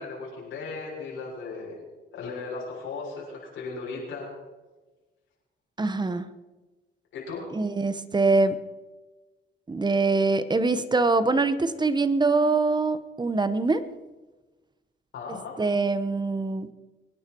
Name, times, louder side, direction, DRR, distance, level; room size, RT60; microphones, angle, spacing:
voice 1, 0.0-1.8 2.1-4.3 7.1-7.5 15.1-15.6, left 4 dB, 75° left, -4 dB, 6.5 m, -36 dB
voice 2, 5.8-6.3 7.5-8.6 9.7-13.9 15.6-16.7, right 3 dB, 20° right, 12 dB, 1.1 m, -24 dB
23.0 x 10.5 x 4.6 m, 1.2 s
cardioid pair, 90°, 20 cm